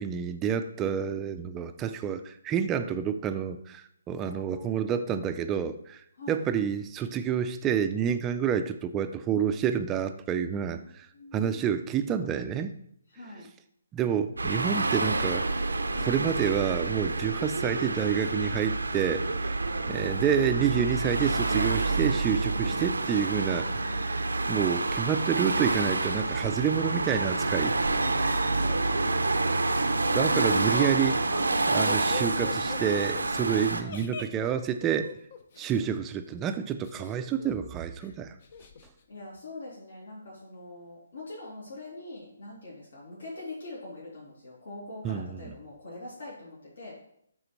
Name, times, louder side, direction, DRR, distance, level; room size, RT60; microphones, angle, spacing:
voice 1, 0.0-11.1 11.3-12.7 13.9-15.7 16.0-19.5 19.9-23.7 24.5-27.7 30.1-31.3 31.7-35.1 35.6-38.4 45.0-45.5, right 8 dB, 15° right, 9 dB, 0.5 m, -29 dB
voice 2, 0.8-1.3 4.2-4.7 6.2-6.4 10.7-10.8 11.1-11.8 13.1-13.5 19.9-20.1 28.5-30.2 39.1-46.9, left 2 dB, 70° left, -6 dB, 2.7 m, -44 dB
sound 1, 14.4-33.8, right 3 dB, 85° right, 0.7 m, -28 dB
Laughter, 30.7-35.8 36.8-37.7 38.0-38.1 38.4-38.9, left 5 dB, 45° left, 0.8 m, -41 dB
11.5 x 3.9 x 3.1 m, 0.71 s
figure-of-eight pair, 145°, 0 cm